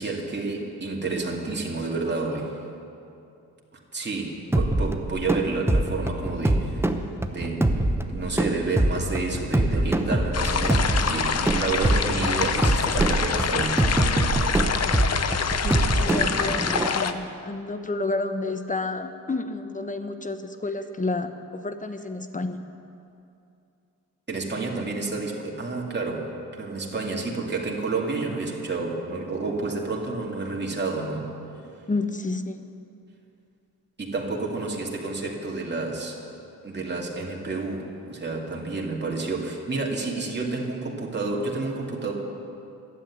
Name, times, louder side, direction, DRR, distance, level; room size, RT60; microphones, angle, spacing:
voice 1, 0.0-2.6 3.9-6.9 7.3-7.8 8.1-13.9 24.3-26.3 26.6-31.3 34.0-36.2 36.6-42.1, right 3 dB, 30° right, -1 dB, 2.3 m, -30 dB
sound 1, 4.5-16.9, right 1 dB, 5° right, 0.8 m, -24 dB
suburban garden ambience, 8.3-15.0 15.3-16.3, right 4 dB, 50° right, 1.8 m, -33 dB
sound 2, 10.3-17.1, left 6 dB, 45° left, 0.8 m, -26 dB
voice 2, 15.6-22.6 31.9-32.7, left 2 dB, 20° left, 8 dB, 1.0 m, -30 dB
12.0 x 7.8 x 9.8 m, 2.6 s
cardioid pair, 65°, 37 cm